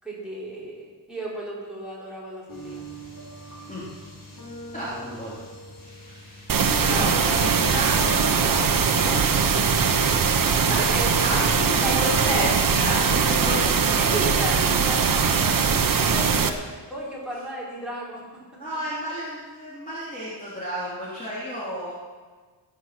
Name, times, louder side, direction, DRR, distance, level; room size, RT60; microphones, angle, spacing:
voice 1, 0.0-2.8 6.8-7.2 10.8-11.2 11.5-12.8 13.2-13.7 13.9-18.2, right 1 dB, ahead, -7 dB, 4.8 m, -34 dB
sound 1, 2.5-9.9, right 2 dB, 45° left, 5.0 m, -41 dB
voice 2, 4.7-5.4 6.2-6.4 6.8-9.3 10.7-10.8 11.2-11.4 11.8-14.5 18.6-21.9, equal, 15° left, -9 dB, 3.4 m, -32 dB
sound 2, 6.5-16.5, right 6 dB, 50° right, 1.1 m, -21 dB
21.0 x 8.0 x 6.1 m, 1.4 s
wide cardioid pair, 155°, 45 cm